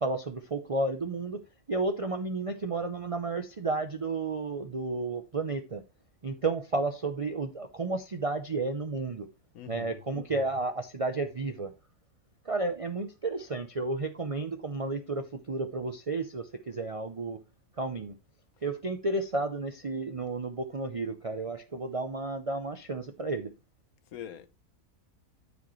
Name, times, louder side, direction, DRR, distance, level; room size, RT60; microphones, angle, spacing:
voice 1, 0.0-1.4 1.7-5.8 6.2-9.3 9.7-11.7 12.4-17.4 17.8-18.2 18.6-23.5, right 3 dB, 50° right, 0.4 m, -32 dB
voice 2, 9.5-10.0 24.1-24.5, left 10 dB, 75° left, 1.2 m, -43 dB
12.5 x 5.1 x 3.1 m
omnidirectional pair, 1.5 m